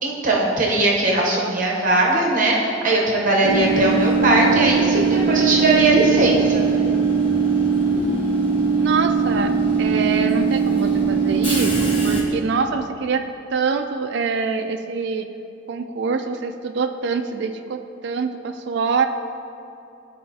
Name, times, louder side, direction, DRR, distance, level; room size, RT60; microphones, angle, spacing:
voice 1, 0.0-6.6, right 2 dB, 45° right, -2 dB, 0.9 m, -19 dB
Train / Subway metro underground, 3.4-12.2, right 5 dB, 30° left, 1.1 m, -20 dB
voice 2, 8.8-9.5 9.8-15.3 15.7-19.1, right 5 dB, 65° right, 6 dB, 0.4 m, -25 dB
12.0 x 4.2 x 2.8 m, 2.7 s
head